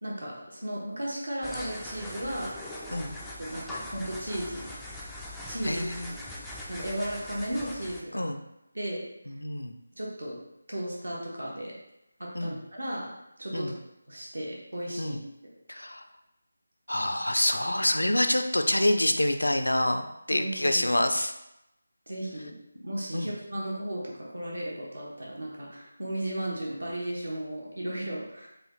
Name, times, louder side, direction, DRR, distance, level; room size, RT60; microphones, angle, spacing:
voice 1, 0.0-2.5 3.4-5.0 5.5-6.2 6.7-8.3 8.7-9.0 10.0-10.4 10.7-11.7 12.2-13.1 13.4-13.7 14.1-15.2 20.3-20.8 22.1-22.5 22.8-28.5, right 1 dB, 70° right, -3 dB, 1.1 m, -35 dB
sound 1, 1.4-8.0, left 1 dB, ahead, 0.3 m, -41 dB
voice 2, 5.6-6.1 8.1-8.4 9.3-9.7 12.3-12.6 13.5-13.7 15.0-15.2 15.7-16.0 16.9-21.3 23.1-23.3, left 1 dB, 75° left, 6 dB, 0.4 m, -27 dB
4.7 x 2.3 x 3.0 m, 0.86 s
figure-of-eight pair, 160°, 0 cm